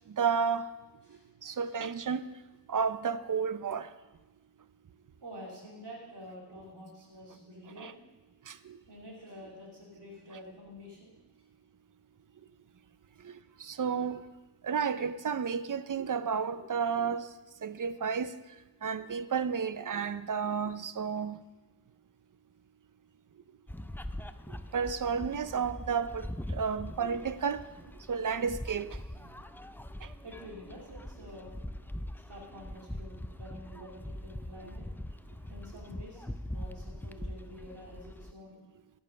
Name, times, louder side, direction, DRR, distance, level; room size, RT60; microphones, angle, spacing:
voice 1, 0.1-0.7 1.4-2.3 2.7-3.9 7.8-7.9 8.5-8.8 13.2-13.3 13.6-14.3 14.6-17.3 17.6-18.4 18.8-21.4 24.7-27.6 28.1-29.0 30.0-30.1 37.2-37.3, right 6 dB, 50° right, 0.6 m, -32 dB
voice 2, 1.1-1.7 5.1-7.9 8.9-11.1 13.1-13.2 16.5-16.6 19.0-19.2 30.2-31.5 32.2-34.8 35.4-38.6, equal, 85° right, 2.8 m, -49 dB
sound 1, 23.7-38.3, left 1 dB, 5° left, 0.4 m, -42 dB
14.0 x 5.4 x 5.7 m
cardioid pair, 40°, 40 cm